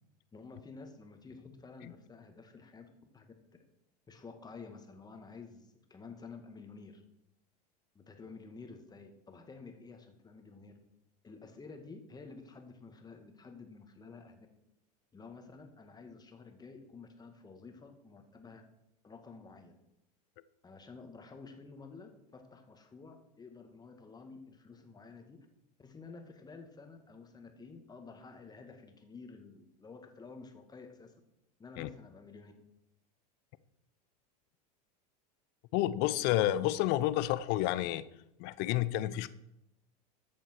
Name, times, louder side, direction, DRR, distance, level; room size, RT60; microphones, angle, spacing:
voice 1, 0.3-3.3 4.1-7.0 7.9-10.7 11.2-14.5 15.1-18.6 19.0-19.7 20.6-25.5 25.8-31.1 31.6-32.5, left 4 dB, 20° left, 5 dB, 2.1 m, -51 dB
voice 2, 35.7-38.0 38.4-39.3, left 14 dB, 55° left, 16 dB, 0.7 m, -30 dB
13.5 x 7.3 x 4.7 m, 0.83 s
hypercardioid pair, 90°, 21 cm